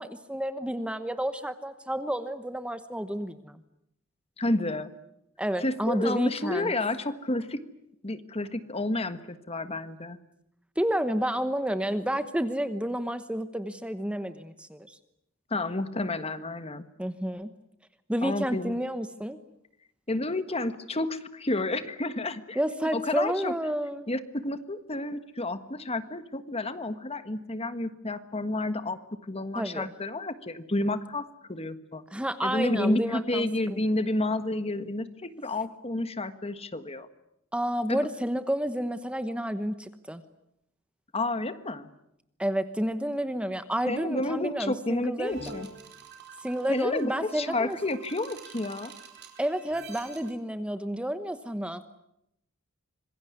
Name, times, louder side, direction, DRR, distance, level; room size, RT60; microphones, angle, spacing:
voice 1, 0.0-3.6 5.4-6.7 10.8-15.0 17.0-17.5 18.1-19.4 22.6-24.1 29.5-29.9 32.1-33.8 37.5-40.2 42.4-45.4 46.4-47.8 49.4-51.8, equal, 5° right, 10 dB, 1.0 m, -30 dB
voice 2, 4.4-4.9 5.6-7.6 8.0-10.2 15.5-16.9 18.2-18.8 20.1-22.6 22.9-23.5 24.1-32.0 32.4-37.1 37.9-38.0 41.1-41.9 43.9-45.7 46.7-48.9, left 2 dB, 30° left, 11 dB, 1.5 m, -30 dB
sound 1, 45.2-50.3, right 4 dB, 55° right, 4.8 m, -47 dB
26.0 x 22.0 x 9.6 m, 0.80 s
head